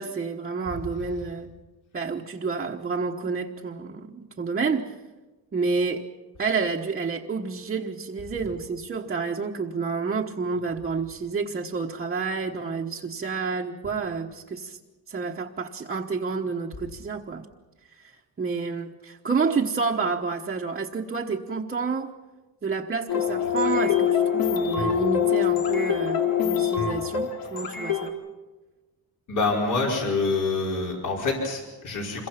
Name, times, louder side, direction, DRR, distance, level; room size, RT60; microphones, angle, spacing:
voice 1, 0.0-1.5 1.9-4.9 5.5-6.1 6.4-14.8 15.1-17.4 18.0-18.1 18.4-22.1 22.6-28.1, right 4 dB, 25° right, -1 dB, 1.2 m, -29 dB
sound 1, 23.1-28.1, left 9 dB, 75° left, 3.1 m, -24 dB
voice 2, 29.3-32.3, left 3 dB, 55° left, -1 dB, 5.0 m, -26 dB
27.5 x 23.0 x 5.9 m, 1.2 s
wide cardioid pair, 175°, 36 cm